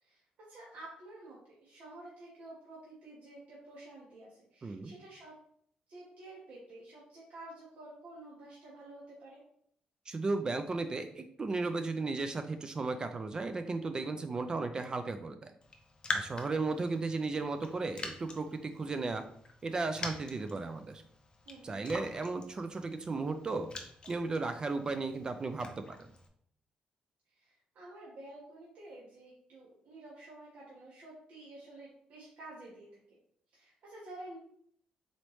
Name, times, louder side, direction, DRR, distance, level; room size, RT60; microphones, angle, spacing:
voice 1, 0.0-5.3 5.9-9.4 21.4-21.9 27.3-33.0 33.5-34.4, right 2 dB, 70° right, -5 dB, 1.1 m, -50 dB
voice 2, 4.6-4.9 10.1-15.5 16.1-19.2 19.6-21.0 21.6-23.7 24.1-26.0, right 3 dB, 30° right, 8 dB, 0.3 m, -35 dB
Raindrop, 15.6-26.3, left 3 dB, 35° left, 0.6 m, -45 dB
4.1 x 3.0 x 3.1 m, 0.65 s
cardioid pair, 125°, 3 cm